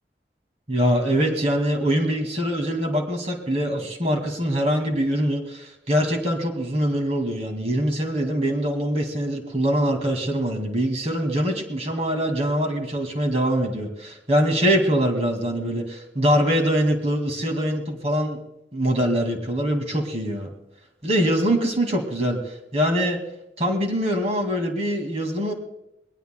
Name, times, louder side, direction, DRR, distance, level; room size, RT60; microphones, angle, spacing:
voice 1, 0.7-18.4 18.7-20.5 21.0-23.2 23.6-25.5, equal, 35° right, 4 dB, 2.2 m, -23 dB
22.5 x 18.0 x 2.3 m, 0.88 s
head